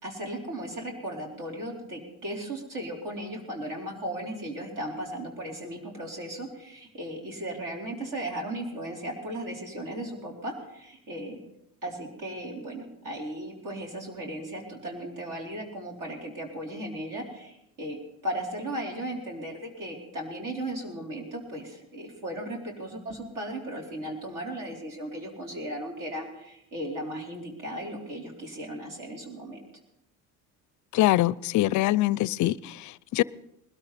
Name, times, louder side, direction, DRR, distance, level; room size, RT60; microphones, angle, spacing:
voice 1, 0.0-11.4 11.8-18.0 18.2-29.6, right 1 dB, 55° right, 4.3 m, -36 dB
voice 2, 30.9-33.2, left 16 dB, 50° left, 0.5 m, -24 dB
20.5 x 13.0 x 4.2 m
cardioid pair, 105°, 38 cm